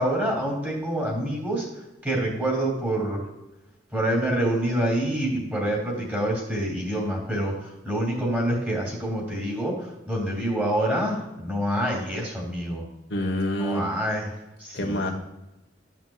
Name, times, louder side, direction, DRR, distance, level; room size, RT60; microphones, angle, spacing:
voice 1, 0.0-1.6 2.0-3.2 3.9-12.8 13.6-14.3 14.6-15.1, right 1 dB, 10° right, -2 dB, 3.0 m, -26 dB
voice 2, 13.1-13.9 14.7-15.1, equal, 75° left, 2 dB, 1.2 m, -26 dB
12.5 x 5.9 x 2.4 m, 0.95 s
head